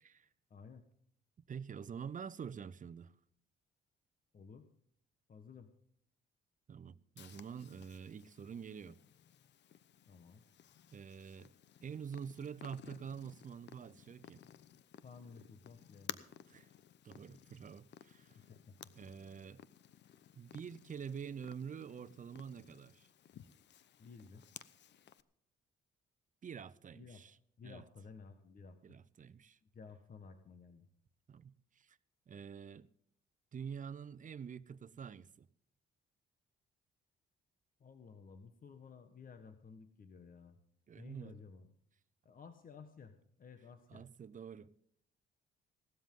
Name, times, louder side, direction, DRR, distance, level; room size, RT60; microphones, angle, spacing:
voice 1, 0.5-0.8 4.3-4.7 5.3-5.7 10.1-10.4 15.0-16.2 18.3-18.8 24.0-24.5 26.9-27.2 27.6-28.8 29.6-30.9 37.8-40.6 41.0-41.7 42.2-44.0, left 5 dB, 45° left, 1.4 m, -55 dB
voice 2, 1.5-3.1 6.7-9.0 10.9-11.5 11.8-14.5 16.5-16.7 17.0-18.4 19.0-19.6 20.3-23.1 26.4-27.4 27.6-27.8 28.8-29.6 31.3-32.0 32.3-32.9 33.5-35.5 40.9-41.4 43.9-44.7, right 7 dB, 40° right, 0.8 m, -47 dB
Purr, 7.2-25.2, left 10 dB, 60° left, 0.9 m, -56 dB
17.5 x 13.0 x 3.8 m
cardioid pair, 90°, 20 cm